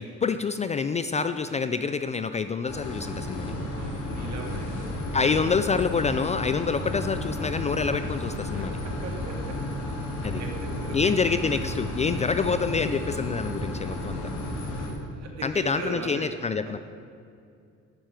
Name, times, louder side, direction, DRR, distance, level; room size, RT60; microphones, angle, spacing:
voice 1, 0.0-3.5 5.1-8.8 10.2-10.4 10.9-14.3 15.4-16.8, left 5 dB, 25° left, 10 dB, 0.4 m, -27 dB
sound 1, 2.7-14.9, left 1 dB, 85° left, 3.7 m, -32 dB
voice 2, 3.7-4.9 8.5-9.5 10.4-11.0 13.6-13.7 14.8-14.9 15.2-16.2 16.6-16.8, right 4 dB, 60° right, 1 dB, 2.5 m, -39 dB
11.5 x 7.4 x 9.0 m, 2.5 s
cardioid pair, 145°, 30 cm